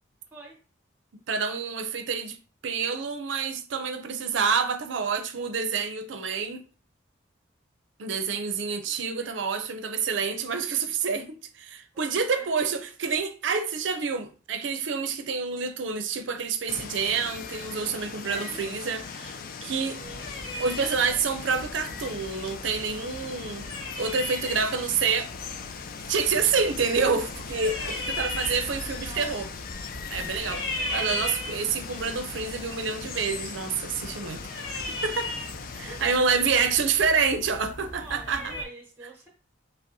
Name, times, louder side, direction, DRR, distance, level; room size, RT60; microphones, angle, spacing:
voice 1, 1.3-2.4 2.6-6.6 8.0-20.0 20.6-23.7 24.0-25.3 26.1-29.5 30.1-30.6 30.9-34.4 35.0-35.4 35.7-38.5, right 5 dB, 65° right, 0.5 m, -28 dB
voice 2, 8.7-9.6 11.9-12.6 18.2-18.6 19.9-20.2 24.4-25.1 27.8-29.3 35.8-36.0 37.9-39.3, right 2 dB, 10° right, 0.9 m, -47 dB
Water, 16.7-36.2, left 6 dB, 45° left, 0.3 m, -39 dB
sound 1, 20.0-38.6, left 1 dB, 65° left, 0.9 m, -38 dB
5.1 x 2.0 x 2.7 m
head